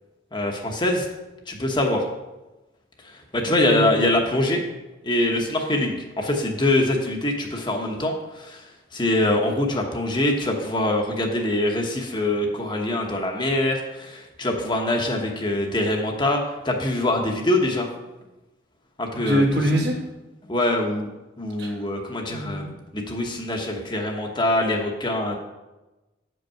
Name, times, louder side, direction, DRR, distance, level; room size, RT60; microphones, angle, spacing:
voice 1, 0.3-1.1 1.5-2.0 3.3-4.6 5.0-8.6 8.9-17.9 19.0-19.4 20.5-21.1 21.4-22.7 22.9-25.4, left 1 dB, 25° left, 1 dB, 1.0 m, -24 dB
voice 2, 3.4-4.0 19.1-20.0 21.6-21.8 22.3-22.7, equal, 60° right, 0 dB, 1.8 m, -24 dB
8.2 x 5.4 x 5.6 m, 1.1 s
head